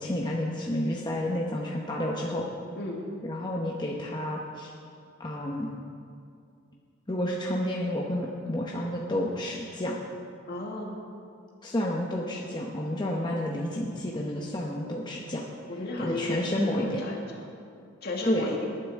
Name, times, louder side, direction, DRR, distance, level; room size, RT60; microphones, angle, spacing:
voice 1, 0.0-2.5 3.2-4.7 5.2-5.7 7.1-10.0 11.6-15.5 16.0-17.0 18.2-18.5, left 1 dB, 20° left, -2 dB, 0.9 m, -30 dB
voice 2, 10.5-11.0 15.7-17.2 18.0-18.6, left 1 dB, 50° left, -1 dB, 2.0 m, -34 dB
19.5 x 9.7 x 3.6 m, 2.4 s
head